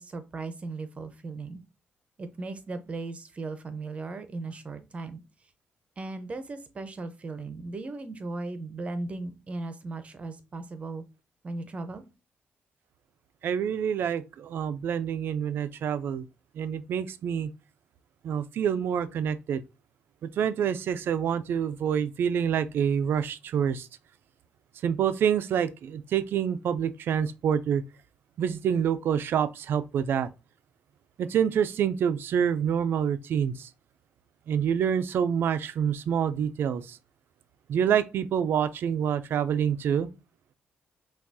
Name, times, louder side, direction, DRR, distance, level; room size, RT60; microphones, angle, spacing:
voice 1, 0.0-1.6 2.2-5.2 6.0-11.0 11.4-12.0, right 3 dB, 35° right, 0.6 m, -37 dB
voice 2, 13.4-16.3 16.5-17.5 18.2-19.6 20.2-23.9 24.8-27.8 28.4-30.3 31.2-33.7 34.5-37.0 37.7-40.1, right 8 dB, 70° right, 0.3 m, -27 dB
5.8 x 2.3 x 2.6 m
cardioid pair, 115°, 4 cm